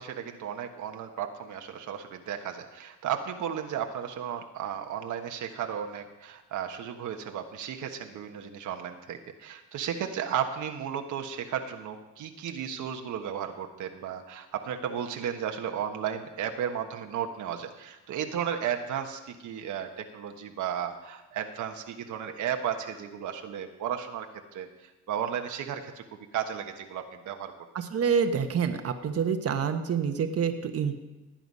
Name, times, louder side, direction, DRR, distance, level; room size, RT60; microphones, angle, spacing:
voice 1, 0.0-24.3 24.5-24.7 25.1-26.0 26.3-27.5, right 9 dB, 75° right, 5 dB, 1.3 m, -34 dB
voice 2, 27.7-31.0, right 6 dB, 50° right, 6 dB, 1.2 m, -27 dB
17.5 x 9.0 x 5.5 m, 1.1 s
cardioid pair, 90°, 30 cm